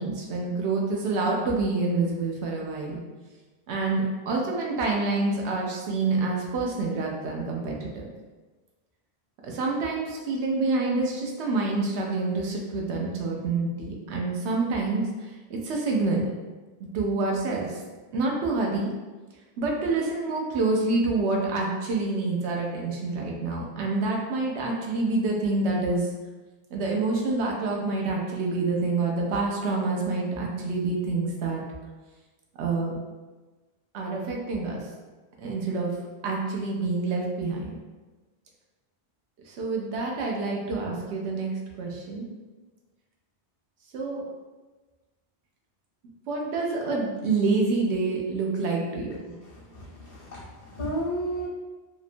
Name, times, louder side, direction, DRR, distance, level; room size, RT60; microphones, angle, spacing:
voice 1, 0.0-3.0 3.7-8.1 9.4-16.2 16.9-17.8 18.1-18.9 19.6-26.1 26.7-31.6 32.6-33.0 33.9-34.8 35.4-35.9 36.2-37.7 39.5-41.5 41.8-42.3 43.9-44.2 46.3-49.3, right 3 dB, 90° right, -1 dB, 0.9 m, -27 dB
voice 2, 49.5-51.5, right 1 dB, 90° left, -6 dB, 1.0 m, -33 dB
2.8 x 2.1 x 2.5 m, 1.2 s
omnidirectional pair, 1.1 m